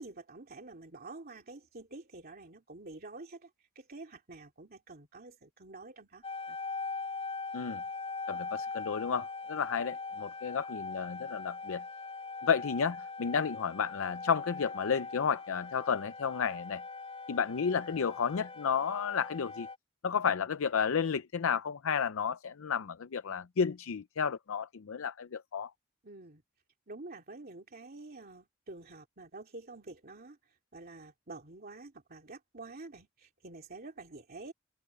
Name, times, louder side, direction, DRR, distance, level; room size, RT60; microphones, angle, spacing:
voice 1, 0.0-3.5 3.7-6.6 26.0-26.4 26.9-34.5, right 3 dB, 50° right, 2.7 m, -48 dB
sound 1, 6.2-19.8, left 4 dB, 30° left, 6.1 m, -41 dB
voice 2, 8.3-11.8 12.4-16.8 17.3-19.7 20.0-25.7, left 6 dB, 85° left, 0.5 m, -32 dB
head